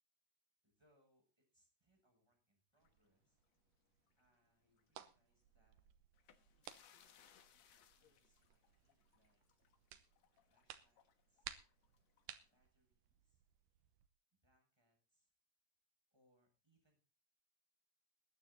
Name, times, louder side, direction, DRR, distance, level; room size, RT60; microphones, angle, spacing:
voice 1, 0.6-3.4 4.2-5.9 6.6-9.4 10.4-11.5 12.5-13.4 14.3-15.3 16.1-17.0, equal, 5° right, 1 dB, 6.6 m, -80 dB
sound 1, 2.8-4.4 4.7-4.9 6.1-12.6, left 9 dB, 60° left, 2.2 m, -71 dB
sound 2, 2.8-14.1, right 11 dB, 75° right, 2.4 m, -60 dB
21.0 x 9.5 x 4.1 m, 0.30 s
omnidirectional pair, 4.0 m